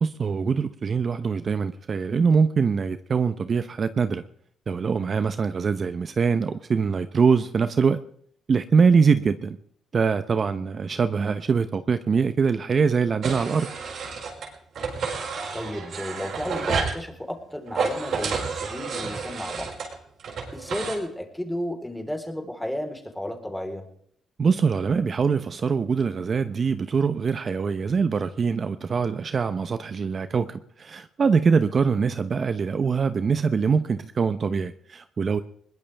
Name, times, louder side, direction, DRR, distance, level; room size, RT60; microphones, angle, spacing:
voice 1, 0.0-4.2 4.7-8.0 8.5-9.6 9.9-13.7 24.4-35.4, right 5 dB, 45° right, 11 dB, 0.8 m, -23 dB
sound 1, 13.2-14.5 14.8-17.0 17.7-21.0, right 5 dB, 65° right, 5.3 m, -30 dB
voice 2, 15.5-19.7 20.5-23.9, left 1 dB, 5° left, 3 dB, 3.9 m, -33 dB
21.5 x 19.5 x 3.5 m, 0.65 s
cardioid pair, 90°, 0 cm